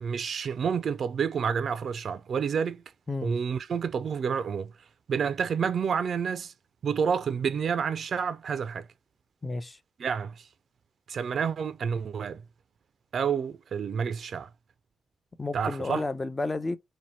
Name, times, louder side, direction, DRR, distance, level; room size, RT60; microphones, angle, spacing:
voice 1, 0.0-2.8 3.2-4.7 5.1-6.5 6.8-8.9 10.0-10.5 11.1-12.4 13.1-14.5 15.5-16.1, right 6 dB, 65° right, 0.3 m, -29 dB
voice 2, 9.4-9.8 15.4-16.8, left 2 dB, 30° left, 0.5 m, -31 dB
2.7 x 2.2 x 3.1 m
hypercardioid pair, 40°, 0 cm